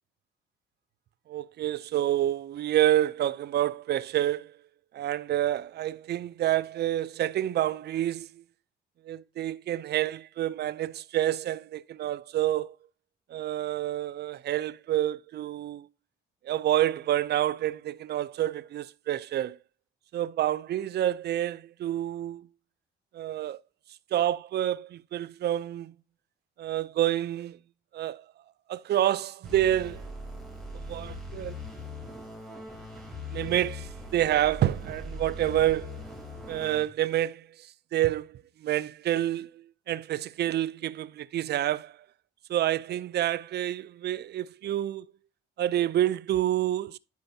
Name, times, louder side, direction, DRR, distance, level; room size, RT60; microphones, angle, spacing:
voice 1, 1.3-4.5 4.9-8.4 9.1-12.7 13.3-15.9 16.4-19.6 20.1-22.5 23.1-23.6 24.1-25.9 26.6-27.6 27.9-28.2 28.7-30.0 30.9-31.6 33.3-36.0 36.5-37.5 37.9-42.0 42.5-45.1 45.6-47.0, right 12 dB, 55° right, 0.4 m, -28 dB
sound 1, 29.4-36.9, left 2 dB, ahead, 3.2 m, -41 dB
10.5 x 5.3 x 2.7 m
cardioid pair, 90°, 20 cm